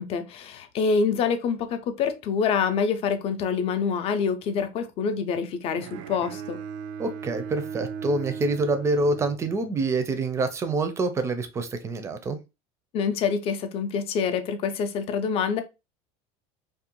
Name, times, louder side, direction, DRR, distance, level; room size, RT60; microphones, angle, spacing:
voice 1, 0.0-6.6 12.9-15.6, left 6 dB, 40° left, 0.5 m, -26 dB
Bowed string instrument, 5.8-10.0, right 7 dB, 80° right, 0.4 m, -37 dB
voice 2, 7.0-12.4, right 3 dB, 20° right, 0.4 m, -26 dB
2.5 x 2.1 x 2.8 m
supercardioid pair, 135°, 15 cm